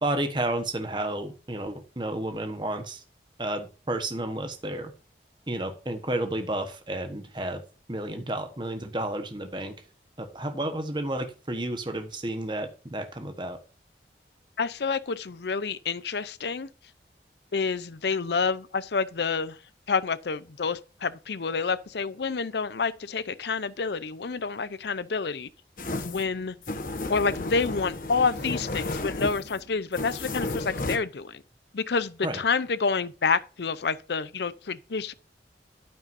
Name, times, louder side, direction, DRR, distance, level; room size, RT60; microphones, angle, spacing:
voice 1, 0.0-3.0 3.4-4.9 5.5-7.6 7.9-9.7 10.2-13.6 32.2-32.4, right 1 dB, 25° right, 1.2 m, -31 dB
voice 2, 14.6-16.7 17.5-19.6 19.9-25.5 26.0-26.5 27.1-31.4 31.7-35.1, left 5 dB, 75° left, 0.6 m, -28 dB
sound 1, 25.8-31.0, left 2 dB, 50° left, 1.2 m, -33 dB
9.3 x 9.1 x 2.7 m
head